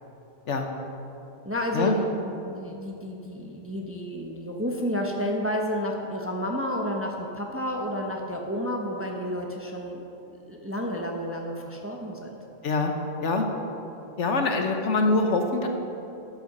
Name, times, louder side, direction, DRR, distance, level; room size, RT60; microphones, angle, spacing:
voice 1, 1.4-10.0 10.5-12.4, equal, 10° right, 0 dB, 0.8 m, -31 dB
voice 2, 14.2-15.7, left 3 dB, 65° left, 3 dB, 1.3 m, -24 dB
12.0 x 7.0 x 6.0 m, 2.8 s
omnidirectional pair, 1.3 m